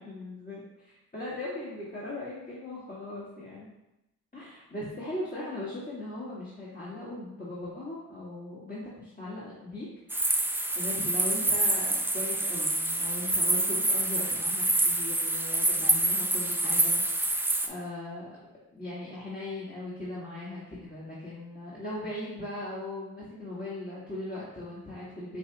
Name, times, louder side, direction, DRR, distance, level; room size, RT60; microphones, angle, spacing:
voice 1, 0.0-3.7 4.3-10.2 10.7-18.3 18.7-25.4, left 2 dB, 20° left, -9 dB, 1.5 m, -39 dB
sound 1, 10.1-17.7, right 2 dB, 5° right, 0.4 m, -27 dB
6.1 x 2.4 x 2.8 m, 0.91 s
supercardioid pair, 40°, 39 cm